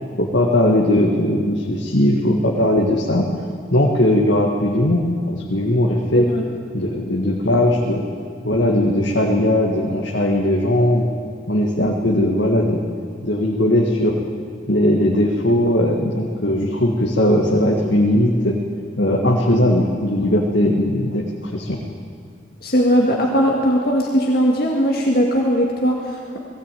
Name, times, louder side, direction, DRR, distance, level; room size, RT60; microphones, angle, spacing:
voice 1, 0.2-3.3 3.7-6.3 6.7-8.0 8.4-11.1 11.5-12.8 13.2-14.2 14.7-18.6 19.0-21.8, left 1 dB, 65° left, -1 dB, 1.9 m, -18 dB
voice 2, 6.2-6.5 22.6-26.4, equal, 50° left, -1 dB, 2.0 m, -19 dB
19.5 x 17.0 x 9.3 m, 2.4 s
head